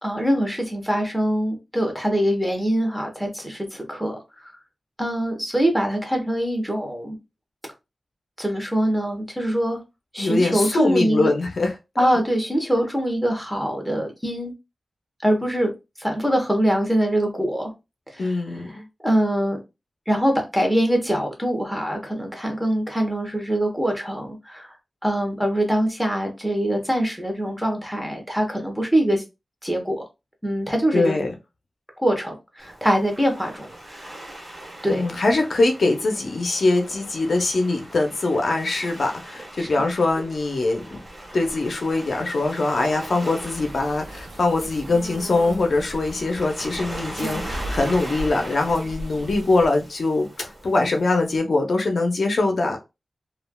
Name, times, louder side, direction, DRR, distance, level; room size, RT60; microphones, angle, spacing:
voice 1, 0.0-4.5 5.0-7.2 8.4-9.8 10.1-11.3 12.0-14.5 15.2-15.7 16.0-17.7 18.1-18.3 18.7-18.8 19.0-19.6 20.1-24.7 25.0-29.2 29.6-30.0 30.4-31.2 32.0-34.1 34.8-35.0 39.6-39.7 40.2-40.3, equal, 5° right, 1.1 m, -23 dB
voice 2, 10.2-11.7 12.0-12.1 18.2-18.8 30.9-31.3 34.9-41.0 41.3-52.8, left 2 dB, 70° left, 0.6 m, -22 dB
Waves surf, 32.6-51.4, right 1 dB, 35° right, 1.4 m, -40 dB
sound 1, 43.4-49.7, right 1 dB, 80° right, 0.7 m, -36 dB
3.2 x 2.4 x 2.2 m
cardioid pair, 60°, 0 cm